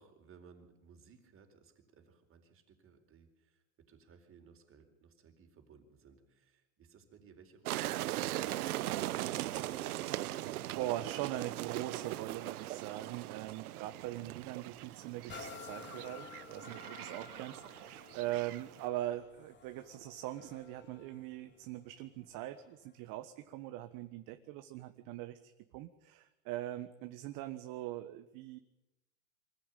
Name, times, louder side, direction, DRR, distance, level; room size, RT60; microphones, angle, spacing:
voice 1, 0.0-9.8, right 6 dB, 30° right, 5 dB, 4.3 m, -61 dB
sound 1, 7.7-18.9, right 15 dB, 85° right, 1.0 m, -40 dB
voice 2, 10.7-28.6, right 14 dB, 50° right, 8 dB, 1.3 m, -41 dB
sound 2, 15.3-22.9 23.5-23.6, left 4 dB, 25° left, 3.9 m, -53 dB
24.5 x 15.0 x 9.1 m, 0.95 s
supercardioid pair, 130°, 43 cm